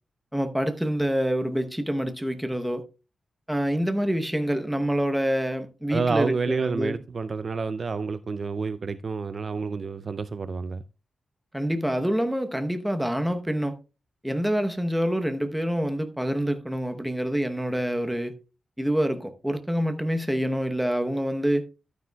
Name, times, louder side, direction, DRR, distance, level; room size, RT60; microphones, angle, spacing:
voice 1, 0.3-2.8 3.5-7.0 11.5-13.7 14.2-18.3 18.8-21.6, equal, 5° right, 0.9 m, -26 dB
voice 2, 5.9-10.8, right 4 dB, 35° right, 0.3 m, -29 dB
12.0 x 9.3 x 2.3 m
wide cardioid pair, 175°, 0 cm